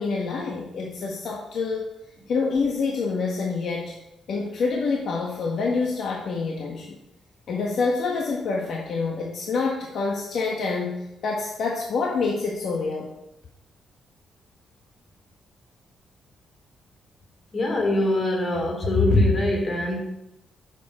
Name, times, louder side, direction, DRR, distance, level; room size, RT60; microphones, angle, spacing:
voice 1, 0.0-1.8 2.3-3.9 4.3-6.9 7.5-13.1, left 4 dB, 60° left, -1 dB, 1.4 m, -27 dB
voice 2, 17.5-20.0, left 2 dB, 30° left, 0 dB, 3.0 m, -22 dB
10.5 x 7.4 x 4.9 m, 0.88 s
cardioid pair, 160°, 0 cm